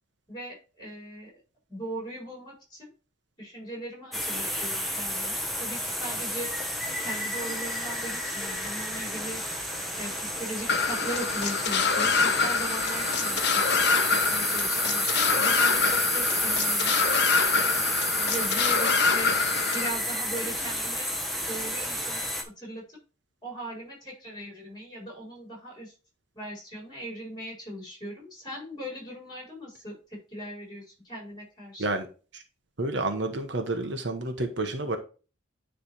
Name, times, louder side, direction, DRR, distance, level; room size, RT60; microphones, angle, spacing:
voice 1, 0.3-1.3 1.7-2.9 3.4-6.5 7.0-9.4 10.0-13.6 14.1-16.9 17.6-19.4 19.7-21.1 21.5-22.3 22.6-23.0 23.4-25.9 26.3-31.9, right 1 dB, 20° left, 4.6 m, -39 dB
sound 1, 4.1-22.4, equal, ahead, 1.0 m, -30 dB
sound 2, 10.7-19.9, left 4 dB, 55° left, 0.8 m, -26 dB
voice 2, 32.8-35.0, right 2 dB, 60° right, 1.0 m, -29 dB
9.8 x 3.4 x 4.4 m
head